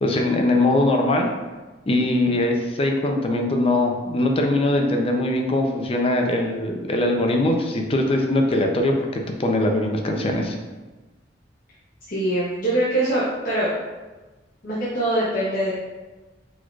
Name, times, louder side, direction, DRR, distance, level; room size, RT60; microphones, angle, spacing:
voice 1, 0.0-1.3 1.9-10.6, left 1 dB, 30° left, 2 dB, 0.5 m, -21 dB
voice 2, 12.1-13.7 14.6-15.7, right 1 dB, 50° left, -9 dB, 0.9 m, -23 dB
4.6 x 4.2 x 2.4 m, 1.2 s
head